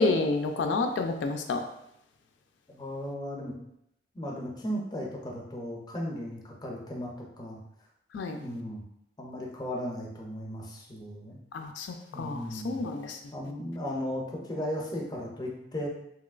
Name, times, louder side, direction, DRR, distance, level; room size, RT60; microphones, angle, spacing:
voice 1, 0.0-1.6 8.1-8.4 11.5-13.2, left 3 dB, 90° left, 5 dB, 0.3 m, -29 dB
voice 2, 2.7-3.5 4.1-7.6 8.4-8.8 9.2-11.4 12.1-12.8 13.3-15.9, equal, 20° left, -2 dB, 0.5 m, -36 dB
2.9 x 2.8 x 2.4 m, 0.78 s
head